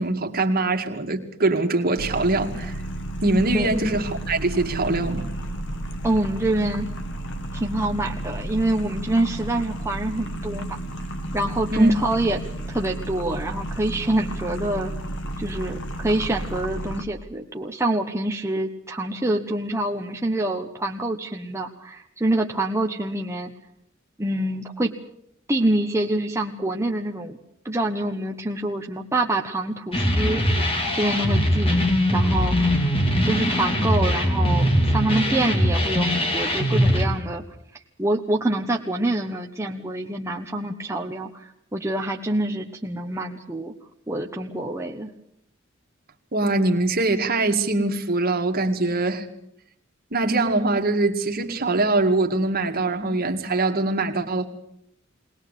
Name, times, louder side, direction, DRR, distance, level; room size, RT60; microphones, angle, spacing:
voice 1, 0.0-2.7 3.2-5.3 11.7-11.9 46.3-49.3 50.1-54.5, right 2 dB, 50° right, 4 dB, 2.1 m, -23 dB
sound 1, 2.0-17.0, right 1 dB, 65° left, 2.0 m, -32 dB
voice 2, 6.0-6.8 7.5-10.8 11.3-12.4 12.7-14.9 15.4-23.5 24.2-24.9 25.5-27.4 27.6-30.4 30.9-32.9 33.3-37.4 38.0-43.7 44.1-45.1, right 1 dB, 15° right, 1 dB, 1.1 m, -26 dB
sound 2, 29.9-37.0, equal, 30° left, 3.0 m, -21 dB
21.0 x 19.5 x 8.2 m, 0.73 s
head